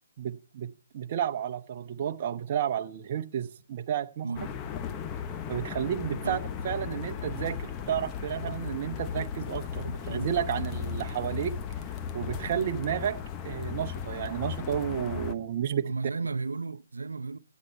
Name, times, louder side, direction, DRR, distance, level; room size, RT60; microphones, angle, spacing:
voice 1, 0.2-4.3 5.5-6.4 6.6-11.6 12.1-15.9, right 9 dB, 40° right, 0.9 m, -32 dB
sound 1, 4.3-10.1, right 8 dB, 15° right, 4.4 m, -58 dB
sound 2, 4.4-15.3, left 8 dB, 20° left, 1.0 m, -36 dB
voice 2, 10.1-10.6 15.8-17.4, right 4 dB, 85° right, 0.8 m, -34 dB
16.0 x 9.4 x 5.5 m
hypercardioid pair, 145°, 0 cm